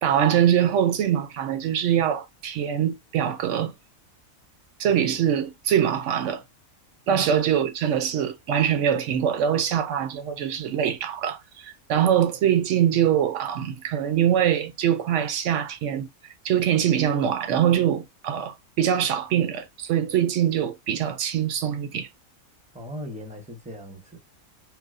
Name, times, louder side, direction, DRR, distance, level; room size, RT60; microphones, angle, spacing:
voice 1, 0.0-3.7 4.8-6.4 7.1-16.1 16.4-22.1, right 9 dB, 65° right, 0.9 m, -23 dB
voice 2, 22.7-24.2, equal, 5° right, 0.6 m, -38 dB
4.6 x 2.0 x 2.4 m
omnidirectional pair, 1.5 m